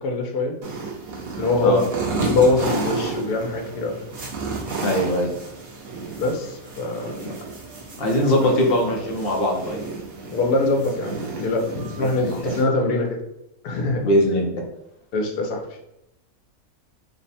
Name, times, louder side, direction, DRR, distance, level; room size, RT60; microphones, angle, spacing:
voice 1, 0.0-0.5 1.4-1.8 2.2-4.0 6.2-7.1 8.2-8.3 10.3-13.1 13.6-14.0 15.1-15.6, left 2 dB, 80° left, 2 dB, 1.2 m, -23 dB
sound 1, 0.6-12.6, right 4 dB, 45° right, 0.9 m, -32 dB
voice 2, 4.8-5.3 7.2-7.3 8.0-9.8 11.9-12.5 14.0-14.4, equal, 55° left, 0 dB, 0.7 m, -21 dB
3.3 x 2.1 x 4.1 m, 0.84 s
omnidirectional pair, 1.6 m